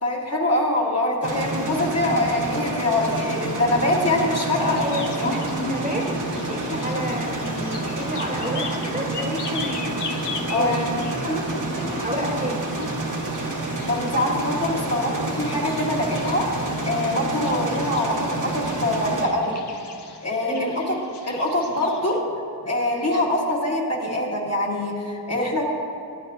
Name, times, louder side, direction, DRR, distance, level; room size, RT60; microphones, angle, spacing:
voice 1, 0.0-4.8 5.2-5.3 10.5-10.8 13.9-16.5 16.9-19.6 20.2-20.8 21.2-22.2 22.6-25.7, left 1 dB, 40° left, -3 dB, 1.7 m, -24 dB
sound 1, 1.2-19.3, right 2 dB, 50° right, 1.3 m, -28 dB
sound 2, 4.5-22.2, left 5 dB, 80° left, 0.9 m, -40 dB
voice 2, 4.6-10.0 10.5-12.7 20.5-20.8, equal, 20° right, -1 dB, 1.4 m, -30 dB
16.5 x 9.0 x 2.8 m, 2.4 s
wide cardioid pair, 75°, 41 cm